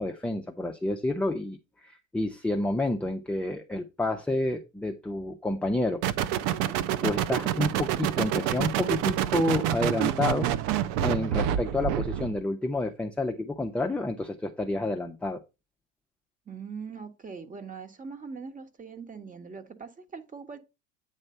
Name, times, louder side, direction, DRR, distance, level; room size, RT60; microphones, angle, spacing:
voice 1, 0.0-1.6 1.8-6.0 7.0-10.5 11.0-15.4, left 2 dB, 5° left, 0.6 m, -29 dB
sound 1, 6.0-12.4, right 11 dB, 50° right, 0.8 m, -27 dB
voice 2, 16.5-20.6, right 5 dB, 20° right, 1.4 m, -41 dB
9.1 x 3.3 x 5.5 m
hypercardioid pair, 85°, 41 cm